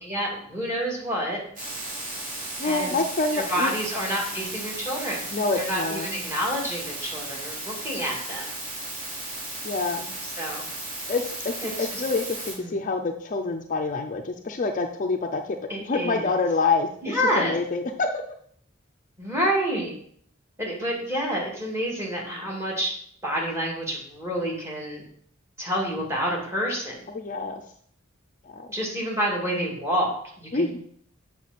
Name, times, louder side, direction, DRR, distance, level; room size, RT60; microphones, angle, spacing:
voice 1, 0.0-1.4 2.6-2.9 3.3-5.3 5.6-8.5 10.4-10.7 11.6-12.0 12.5-12.8 15.7-16.4 17.0-17.5 19.2-19.9 20.6-22.9 23.2-25.0 25.6-27.1 28.7-30.8, equal, 15° right, -2 dB, 2.2 m, -28 dB
sound 1, 1.6-12.5, right 1 dB, 40° right, 2.9 m, -35 dB
voice 2, 2.6-3.7 5.3-6.1 9.6-10.1 11.1-15.4 15.8-18.1 27.1-27.6 28.5-28.6 30.5-30.8, left 3 dB, 40° left, 5 dB, 0.5 m, -27 dB
7.9 x 5.8 x 4.2 m, 0.63 s
head